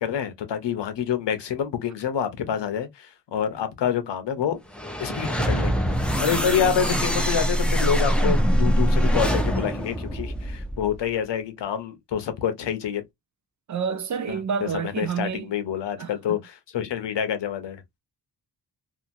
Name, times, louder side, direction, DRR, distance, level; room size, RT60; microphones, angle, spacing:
voice 1, 0.0-4.6 5.0-5.7 6.2-13.0 14.3-16.4 16.7-17.8, left 8 dB, 80° left, 0.8 m, -27 dB
sound 1, 4.7-11.0, equal, 5° left, 0.5 m, -23 dB
voice 2, 13.7-15.5 16.0-16.4, right 6 dB, 45° right, 0.4 m, -29 dB
2.8 x 2.5 x 2.5 m
wide cardioid pair, 155°, 42 cm